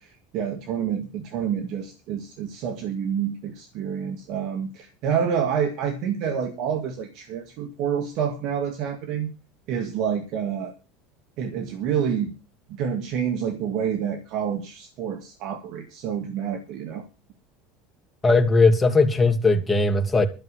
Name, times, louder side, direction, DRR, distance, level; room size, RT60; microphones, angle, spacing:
voice 1, 0.0-9.3 9.7-10.7 11.4-12.3 12.7-17.1, right 8 dB, 60° right, 2.2 m, -28 dB
voice 2, 18.2-20.3, left 3 dB, 15° left, 2.6 m, -18 dB
12.5 x 6.9 x 8.4 m
hypercardioid pair, 95°, 0 cm